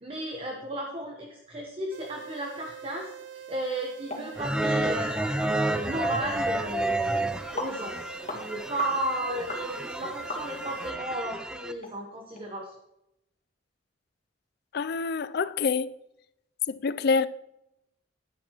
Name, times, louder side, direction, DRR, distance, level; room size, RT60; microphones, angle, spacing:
voice 1, 0.0-5.2 5.7-7.2 7.5-8.0 8.3-12.7, right 1 dB, 30° right, 1.1 m, -34 dB
sound 1, 1.9-10.9, right 9 dB, 90° right, 0.7 m, -44 dB
sound 2, 4.1-4.2 4.6-4.7 5.2-5.3 5.5-5.7 6.2-6.4 6.9-7.0 7.6-7.8 8.3-8.4 8.8-9.0 9.5-9.6 10.3-10.7 11.2-11.3 11.8-11.9 12.4-12.5, left 2 dB, 35° left, 1.9 m, -36 dB
sound 3, 4.4-11.7, right 1 dB, 5° right, 0.5 m, -30 dB
voice 2, 14.7-15.9 16.7-17.3, left 4 dB, 55° left, 0.4 m, -26 dB
10.5 x 10.0 x 3.0 m
head